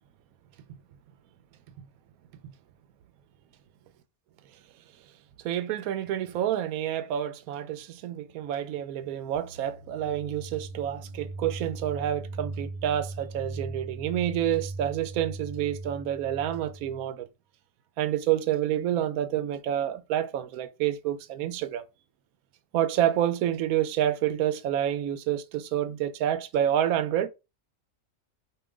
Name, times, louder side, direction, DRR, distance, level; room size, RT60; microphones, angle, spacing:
voice 1, 5.4-17.3 18.0-21.8 22.7-27.3, right 11 dB, 75° right, 1.1 m, -28 dB
sound 1, 9.3-17.1, right 2 dB, 55° right, 0.6 m, -39 dB
5.4 x 2.6 x 3.7 m
omnidirectional pair, 1.5 m